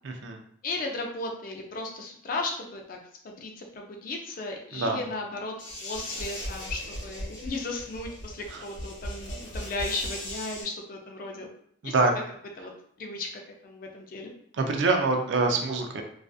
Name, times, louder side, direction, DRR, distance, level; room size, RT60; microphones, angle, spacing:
voice 1, 0.0-0.4 4.7-5.0 8.5-8.6 11.8-12.1 14.5-16.0, right 3 dB, 60° right, 4 dB, 0.4 m, -25 dB
voice 2, 0.6-3.0 3.2-5.5 5.8-11.5 11.8-11.9 12.6-12.7 13.0-14.3, left 2 dB, 45° left, 2 dB, 0.4 m, -35 dB
sound 1, 5.6-10.6, equal, 65° left, 0.8 m, -38 dB
2.5 x 2.4 x 2.3 m, 0.65 s
head